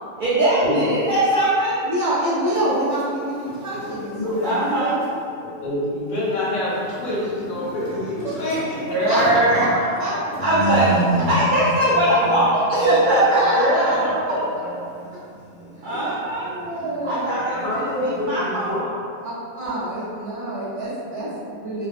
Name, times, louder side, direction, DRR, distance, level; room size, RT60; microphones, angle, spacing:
voice 1, 0.2-1.8 4.4-5.0 8.9-9.8 10.4-10.9 11.3-13.7 15.8-16.5 17.0-18.7, right 1 dB, 85° right, -9 dB, 0.4 m, -20 dB
voice 2, 1.8-4.9 8.2-8.3 9.0-9.2 9.5-9.6 10.0-10.1 10.4-10.5 13.3-14.0 14.3-14.4 15.8-15.9 16.4-17.5 19.2-21.9, right 1 dB, 35° right, -14 dB, 0.7 m, -27 dB
sound 1, 2.4-5.2 6.1-18.8, right 1 dB, 70° left, 0.9 m, -32 dB
voice 3, 4.2-4.6 5.4-8.6 9.1-9.2 13.6-14.7 14.9-15.0 15.9-16.1 16.8-16.9 17.6-18.9, left 1 dB, 85° left, -8 dB, 1.2 m, -26 dB
2.5 x 2.3 x 2.4 m, 2.4 s
omnidirectional pair, 1.4 m